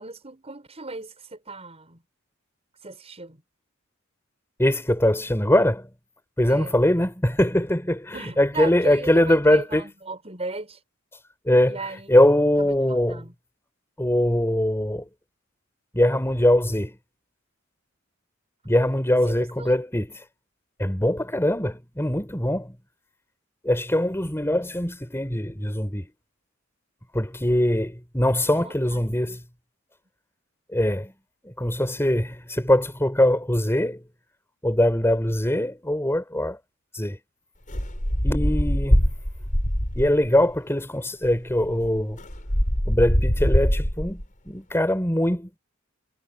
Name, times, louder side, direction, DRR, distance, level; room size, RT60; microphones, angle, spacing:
voice 1, 0.0-2.0 2.8-3.4 6.5-6.8 8.1-10.8 11.6-12.1 12.6-13.3 19.2-19.8 28.5-29.4 38.4-38.8, right 3 dB, 30° right, 6.7 m, -37 dB
voice 2, 4.6-5.9 6.4-9.9 11.4-11.8 12.1-13.2 14.0-15.0 15.9-17.0 18.6-20.2 20.8-22.8 23.6-26.1 27.1-29.4 30.7-31.1 31.4-34.0 34.6-36.6 36.9-37.2 38.2-39.1 39.9-42.2 42.8-45.6, left 1 dB, 10° left, 4.9 m, -22 dB
sound 1, 37.7-40.3 41.2-41.3 41.6-44.2, equal, 40° left, 5.9 m, -23 dB
head